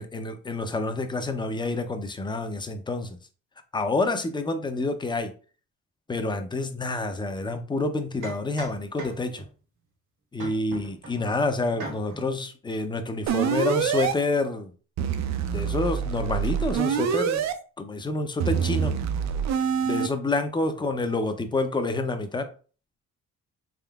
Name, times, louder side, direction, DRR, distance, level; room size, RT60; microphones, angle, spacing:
voice 1, 0.0-3.2 3.7-5.3 6.1-9.4 10.3-14.7 15.5-17.4 17.8-18.9 19.8-22.5, left 2 dB, 15° left, 0.5 m, -28 dB
sound 1, 7.4-7.6 8.2-9.5 10.4-11.3 11.7-12.3, right 2 dB, 80° right, 1.4 m, -40 dB
sound 2, 13.3-14.1 15.0-17.5 18.4-20.1, right 8 dB, 65° right, 0.5 m, -26 dB
3.6 x 3.3 x 2.3 m
cardioid pair, 90°, 30 cm